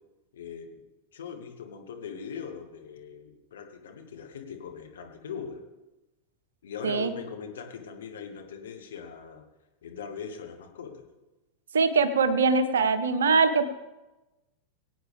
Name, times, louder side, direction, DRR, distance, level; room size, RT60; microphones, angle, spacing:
voice 1, 0.3-0.9 1.1-5.6 6.6-9.4 9.8-11.1, left 6 dB, 60° left, 4 dB, 1.7 m, -40 dB
voice 2, 11.7-13.7, right 4 dB, 65° right, 12 dB, 0.9 m, -22 dB
22.0 x 8.7 x 3.6 m, 1.1 s
figure-of-eight pair, 90°, 0 cm